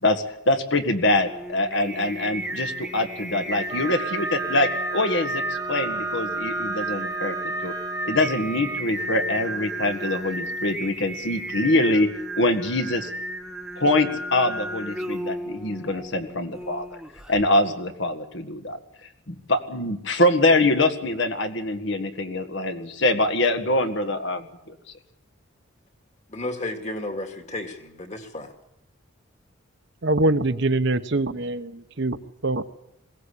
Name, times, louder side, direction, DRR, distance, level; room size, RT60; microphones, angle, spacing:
voice 1, 0.0-7.4 7.6-7.7 8.0-12.1 12.4-13.1 13.8-16.9 17.3-18.8 19.3-24.8, left 2 dB, 65° left, 7 dB, 1.9 m, -24 dB
Singing, 1.2-17.5, right 1 dB, 5° right, 1.4 m, -33 dB
Wind instrument woodwind instrument, 3.7-8.8, right 4 dB, 20° right, 0.8 m, -33 dB
voice 2, 26.3-28.5, left 2 dB, 35° left, 5 dB, 2.6 m, -33 dB
voice 3, 30.0-32.6, right 2 dB, 60° right, 11 dB, 1.1 m, -24 dB
21.5 x 17.5 x 8.5 m, 0.80 s
head